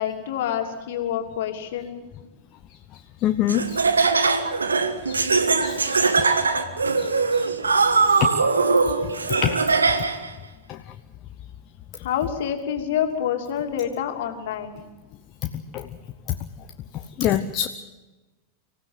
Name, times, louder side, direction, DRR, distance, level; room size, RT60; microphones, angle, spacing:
voice 1, 0.0-2.1 12.0-14.8, left 9 dB, 55° left, 4 dB, 2.8 m, -27 dB
voice 2, 3.2-3.8 5.1-5.2 5.6-6.3 7.0-7.1 8.2-8.3 9.4-9.6 15.7-15.9 17.2-17.7, left 11 dB, 35° left, 8 dB, 0.9 m, -24 dB
Laughter, 3.5-10.3, right 4 dB, 75° right, 1.4 m, -21 dB
25.0 x 16.0 x 7.7 m, 1.1 s
figure-of-eight pair, 90°, 0 cm